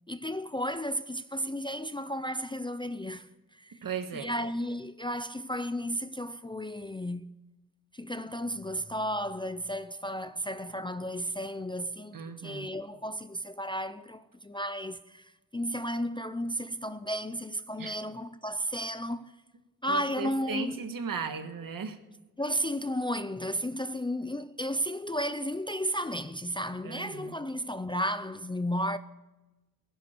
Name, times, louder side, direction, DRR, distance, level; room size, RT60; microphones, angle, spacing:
voice 1, 0.1-3.8 4.1-7.3 7.9-19.3 19.8-20.8 22.4-29.0, equal, 15° left, 0.4 m, -33 dB
voice 2, 3.8-4.3 12.1-12.7 17.8-17.9 19.9-22.0 26.8-27.4, right 5 dB, 65° right, 1.6 m, -36 dB
25.0 x 11.0 x 4.5 m
wide cardioid pair, 140°, 35 cm